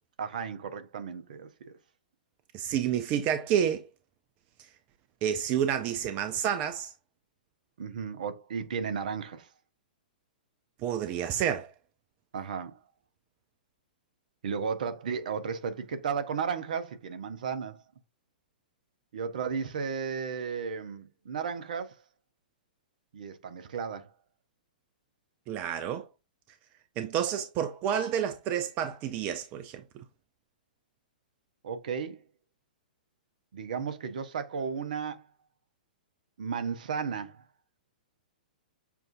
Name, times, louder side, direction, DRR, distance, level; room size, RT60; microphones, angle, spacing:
voice 1, 0.2-1.5 7.8-9.5 12.3-12.8 14.4-17.8 19.1-22.0 23.1-24.1 31.6-32.2 33.5-35.3 36.4-37.4, right 6 dB, 60° right, 0.8 m, -34 dB
voice 2, 2.5-3.8 5.2-6.9 10.8-11.7 25.5-26.1 27.0-29.8, right 9 dB, 30° right, 0.5 m, -29 dB
6.9 x 2.5 x 2.6 m
figure-of-eight pair, 110°, 5 cm